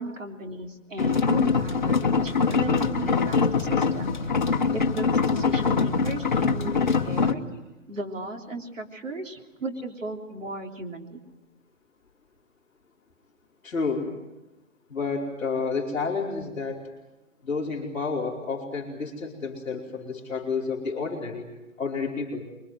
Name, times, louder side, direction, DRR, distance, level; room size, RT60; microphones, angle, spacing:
voice 1, 0.0-4.1 4.7-7.5 7.9-11.2, right 2 dB, 70° right, 3 dB, 3.4 m, -36 dB
sound 1, 1.0-7.3, left 5 dB, 35° left, 1.2 m, -23 dB
voice 2, 13.6-14.1 14.9-16.9 17.4-21.5 21.8-22.5, left 4 dB, 5° left, -11 dB, 3.4 m, -30 dB
25.0 x 24.0 x 7.8 m, 0.97 s
hypercardioid pair, 175°, 40 cm